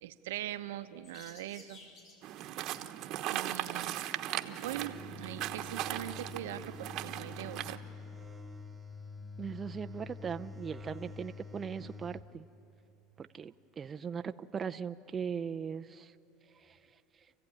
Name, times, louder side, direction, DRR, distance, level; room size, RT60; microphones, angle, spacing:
voice 1, 0.0-1.8 3.3-7.8, right 13 dB, 90° right, 10 dB, 0.9 m, -42 dB
sound 1, 1.0-2.5 2.9-3.2 3.8-6.9, left 2 dB, 45° left, 5.3 m, -59 dB
sound 2, 2.2-7.8, right 13 dB, 55° right, 1.1 m, -38 dB
sound 3, 4.6-12.3, left 4 dB, 10° right, 2.0 m, -47 dB
voice 2, 9.4-12.5 13.2-16.1 16.6-16.8, right 7 dB, 25° right, 8 dB, 0.5 m, -39 dB
28.5 x 15.5 x 9.7 m, 2.8 s
supercardioid pair, 120°, 0 cm